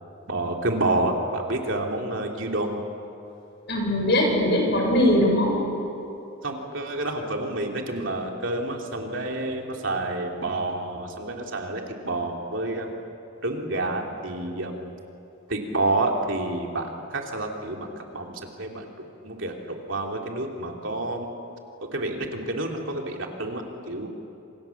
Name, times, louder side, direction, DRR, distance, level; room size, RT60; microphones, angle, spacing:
voice 1, 0.3-2.8 6.4-12.9 13.4-14.8 15.5-18.3 18.6-21.3 21.9-24.1, right 2 dB, 60° right, 1 dB, 3.2 m, -29 dB
voice 2, 3.7-5.6, left 1 dB, 50° left, 0 dB, 7.2 m, -21 dB
28.0 x 27.5 x 7.3 m, 2.8 s
head